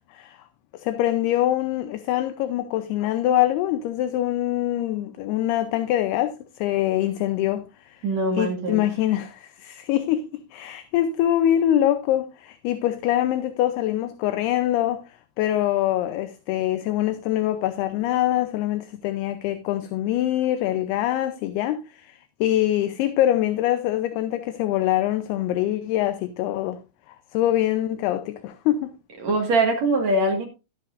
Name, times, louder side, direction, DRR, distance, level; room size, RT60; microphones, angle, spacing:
voice 1, 0.7-8.0 8.3-15.0 15.4-26.8 27.1-28.9, left 12 dB, 80° left, 2.6 m, -24 dB
voice 2, 8.0-8.8 29.2-30.5, right 2 dB, 50° right, 2.5 m, -22 dB
12.5 x 11.0 x 2.5 m
omnidirectional pair, 4.9 m